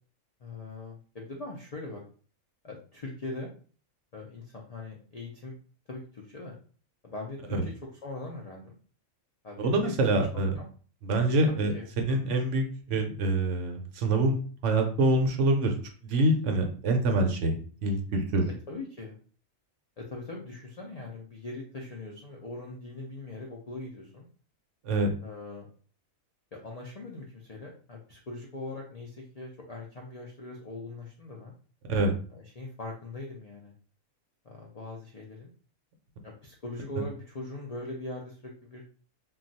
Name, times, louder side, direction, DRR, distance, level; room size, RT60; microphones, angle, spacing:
voice 1, 0.4-2.0 2.6-3.5 4.1-5.5 5.9-6.6 7.0-7.7 8.0-8.7 9.4-9.9 10.3-10.7 11.5-11.9 18.7-19.1 20.0-24.3 25.2-25.7 26.5-31.5 32.3-33.7 34.4-35.5 36.2-38.8, left 2 dB, 80° left, -1 dB, 0.3 m, -41 dB
voice 2, 9.6-10.6 11.0-15.7 16.0-18.5 24.8-25.1 31.9-32.1, right 2 dB, 70° right, 4 dB, 0.9 m, -26 dB
2.3 x 2.2 x 3.9 m, 0.41 s
omnidirectional pair, 1.4 m